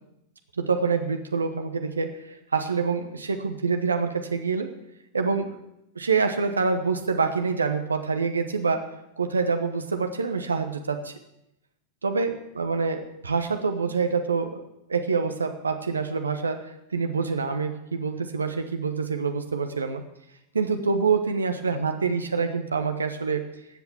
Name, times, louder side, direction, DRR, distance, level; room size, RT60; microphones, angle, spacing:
voice 1, 0.6-4.7 5.1-5.5 5.9-8.8 9.2-11.1 12.0-14.6 14.9-16.6 16.9-20.0 20.5-23.5, right 5 dB, 75° right, 6 dB, 1.1 m, -26 dB
13.5 x 8.2 x 7.1 m, 0.84 s
figure-of-eight pair, 90°, 0 cm